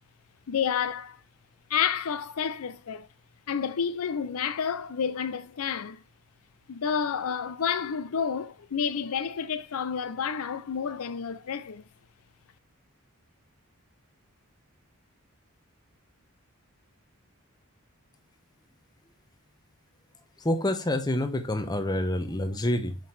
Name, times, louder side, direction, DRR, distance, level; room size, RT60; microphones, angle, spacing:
voice 1, 0.5-1.2 1.7-3.1 3.5-6.0 6.7-11.8, left 7 dB, 75° left, 0.5 m, -30 dB
voice 2, 20.4-23.0, left 1 dB, 20° left, 0.9 m, -27 dB
6.3 x 5.6 x 3.2 m
head